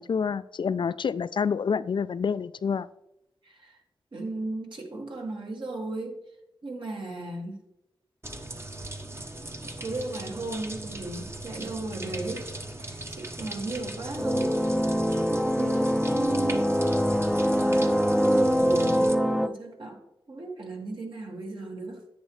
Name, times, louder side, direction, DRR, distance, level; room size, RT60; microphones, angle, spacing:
voice 1, 0.0-2.9, left 6 dB, 65° left, 15 dB, 0.4 m, -28 dB
voice 2, 3.4-3.8 4.1-6.2 6.6-7.6 9.8-14.8 15.3-16.8 17.5-20.0 20.3-22.0, right 2 dB, 65° right, 1 dB, 2.1 m, -35 dB
sound 1, 8.2-19.2, right 1 dB, 30° right, 1.0 m, -39 dB
sound 2, 14.2-19.5, equal, 5° right, 0.5 m, -24 dB
10.0 x 8.2 x 3.2 m, 0.86 s
cardioid pair, 55°, 9 cm